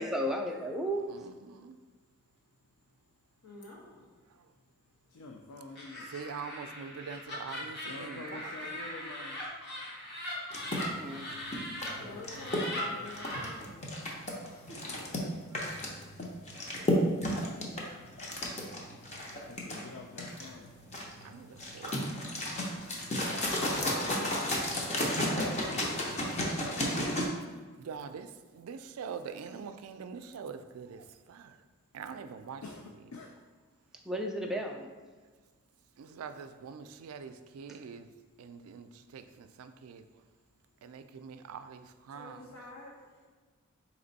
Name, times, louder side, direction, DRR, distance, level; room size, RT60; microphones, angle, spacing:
voice 1, 0.0-1.1 11.0-11.3 34.1-34.9, equal, ahead, 1 dB, 0.3 m, -33 dB
voice 2, 1.1-1.8 6.1-8.9 14.9-15.6 21.2-22.0 27.8-31.6 31.9-33.0 36.0-38.1 38.4-40.0 40.8-42.6, right 6 dB, 80° right, 9 dB, 0.3 m, -44 dB
voice 3, 3.4-3.9 12.0-13.8 14.4-15.0 42.1-42.9, left 2 dB, 70° left, -3 dB, 1.1 m, -48 dB
voice 4, 5.1-6.1 7.9-9.4 12.0-13.2 14.9-15.3 19.5-20.7 32.6-32.8 33.1-33.3, left 3 dB, 85° left, 1 dB, 0.4 m, -47 dB
Laughter, 5.7-11.9 12.3-13.5, left 1 dB, 50° left, 1.1 m, -40 dB
sound 1, 10.5-27.3, left 1 dB, 30° left, 0.7 m, -33 dB
4.3 x 3.0 x 4.0 m, 1.4 s
head